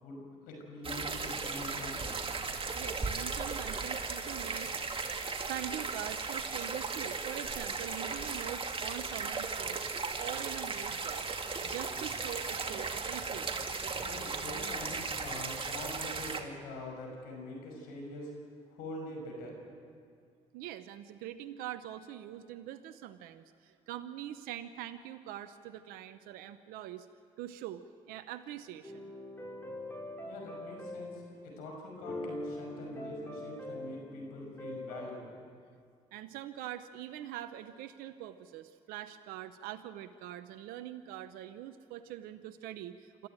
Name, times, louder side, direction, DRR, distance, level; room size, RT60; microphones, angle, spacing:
voice 1, 0.0-2.2 14.0-18.3 18.7-19.6 30.3-35.4, left 1 dB, 85° left, 0 dB, 5.8 m, -44 dB
sound 1, 0.8-16.4, right 4 dB, 35° right, 2.3 m, -36 dB
voice 2, 2.7-9.9 10.2-11.4 11.6-13.7 20.5-27.1 27.4-29.1 36.1-43.3, right 12 dB, 85° right, 11 dB, 0.8 m, -44 dB
sound 2, 28.8-31.5 31.9-35.2, left 1 dB, 15° left, 5.3 m, -43 dB
26.5 x 13.5 x 9.2 m, 2.2 s
supercardioid pair, 55°, 15 cm